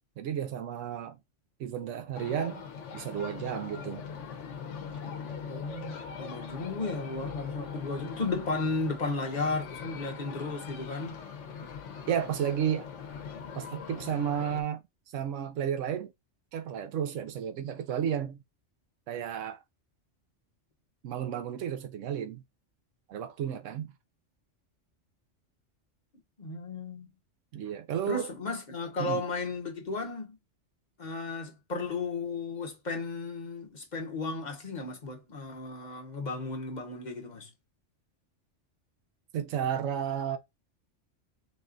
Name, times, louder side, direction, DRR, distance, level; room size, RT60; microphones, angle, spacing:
voice 1, 0.2-1.2 1.6-2.6 2.9-4.1 12.1-12.9 13.5-14.8 15.1-16.1 16.5-18.4 19.1-19.6 21.0-22.4 23.1-23.9 27.5-28.3 29.0-29.2 39.3-40.4, right 9 dB, 80° right, 1.0 m, -32 dB
sound 1, 2.1-14.6, left 6 dB, 75° left, 1.1 m, -41 dB
voice 2, 5.5-11.2 26.4-27.1 28.1-30.4 31.0-37.5, left 3 dB, 40° left, 1.0 m, -34 dB
4.0 x 2.3 x 3.7 m
omnidirectional pair, 1.3 m